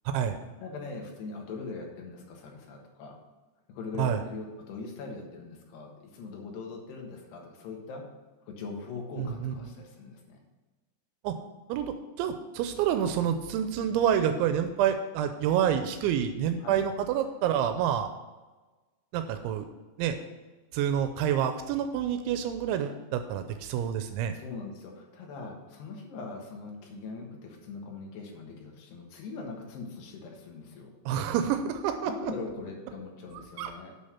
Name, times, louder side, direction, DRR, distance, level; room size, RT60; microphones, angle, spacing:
voice 1, 0.6-3.2 3.7-8.0 8.4-10.4 16.6-16.8 24.3-30.9 32.1-33.9, left 4 dB, 70° left, 0 dB, 3.4 m, -41 dB
voice 2, 9.2-9.5 11.2-11.3 11.7-18.1 19.1-19.7 20.0-20.2 20.7-24.3 31.1-32.3 33.6-33.7, right 9 dB, 85° right, 8 dB, 3.0 m, -28 dB
8.2 x 6.5 x 5.7 m, 1.2 s
omnidirectional pair, 5.2 m